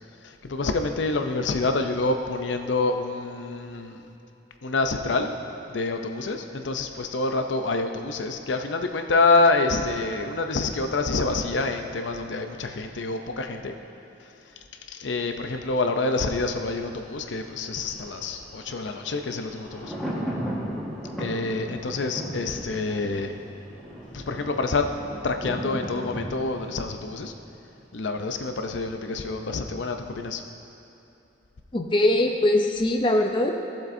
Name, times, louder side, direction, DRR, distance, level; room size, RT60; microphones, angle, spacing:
voice 1, 0.2-4.0 4.6-5.3 5.7-13.7 14.9-19.9 21.2-23.3 24.1-24.8 25.2-27.3 27.9-30.4, left 3 dB, 85° left, 5 dB, 0.6 m, -27 dB
Thunder, 16.9-27.9 28.2-28.3, equal, ahead, 1.5 m, -37 dB
voice 2, 31.7-33.5, left 1 dB, 25° left, 3 dB, 0.6 m, -21 dB
16.5 x 7.5 x 2.7 m, 2.9 s
head